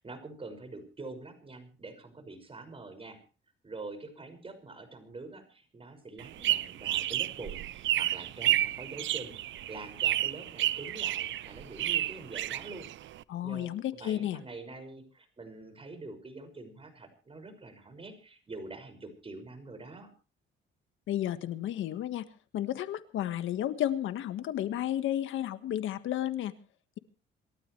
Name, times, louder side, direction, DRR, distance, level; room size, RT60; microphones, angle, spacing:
voice 1, 0.0-3.2 3.6-12.9 13.4-20.1, right 3 dB, 30° right, 7 dB, 6.1 m, -45 dB
sound 1, 6.2-13.2, right 13 dB, 70° right, 0.7 m, -31 dB
voice 2, 13.3-14.4 21.1-22.3 22.5-26.5, left 12 dB, 80° left, 11 dB, 1.6 m, -32 dB
27.5 x 13.0 x 3.3 m, 0.36 s
cardioid pair, 90°, 20 cm